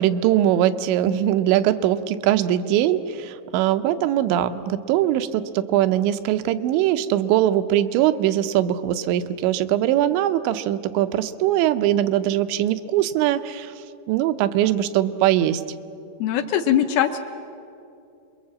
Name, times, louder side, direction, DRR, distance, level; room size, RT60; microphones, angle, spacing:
voice 1, 0.0-13.7 14.1-15.6, right 12 dB, 90° right, 10 dB, 3.1 m, -21 dB
voice 2, 16.2-17.2, left 10 dB, 75° left, 6 dB, 2.4 m, -21 dB
27.0 x 22.5 x 7.5 m, 2.6 s
omnidirectional pair, 5.1 m